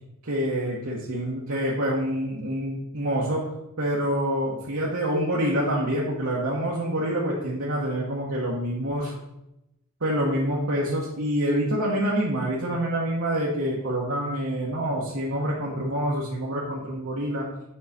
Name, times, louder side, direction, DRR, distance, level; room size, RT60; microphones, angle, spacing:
voice 1, 0.2-3.5 3.8-9.1 10.0-17.5, equal, 70° right, -5 dB, 1.2 m, -26 dB
7.5 x 4.8 x 4.2 m, 0.88 s
head